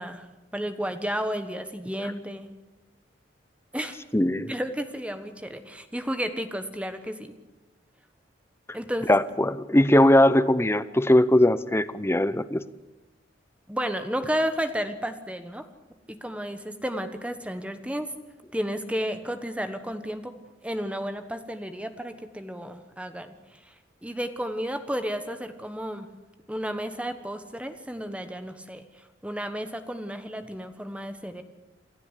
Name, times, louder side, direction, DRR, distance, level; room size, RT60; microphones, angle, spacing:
voice 1, 0.0-2.5 3.7-4.0 4.5-7.3 8.7-9.2 13.7-15.7 16.1-18.1 18.5-20.3 20.6-23.7 24.0-26.1 26.5-31.4, equal, 5° right, 8 dB, 1.3 m, -32 dB
voice 2, 4.1-4.5 9.1-12.6, left 1 dB, 15° left, 13 dB, 0.7 m, -20 dB
28.5 x 12.0 x 8.3 m, 1.1 s
head